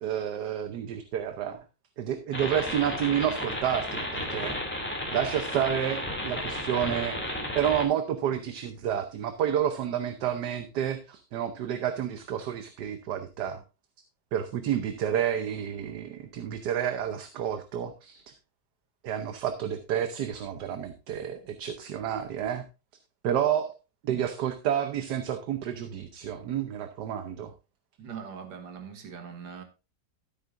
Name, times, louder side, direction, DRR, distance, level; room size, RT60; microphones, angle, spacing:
voice 1, 0.0-1.6 2.0-4.6 5.1-13.6 14.3-18.2 19.0-22.6 23.2-23.7 24.0-27.5, right 9 dB, 65° right, 1.4 m, -30 dB
sound 1, 2.3-7.8, left 1 dB, 5° left, 2.3 m, -33 dB
voice 2, 28.0-29.6, right 7 dB, 85° right, 2.0 m, -41 dB
13.0 x 8.4 x 2.5 m
omnidirectional pair, 2.0 m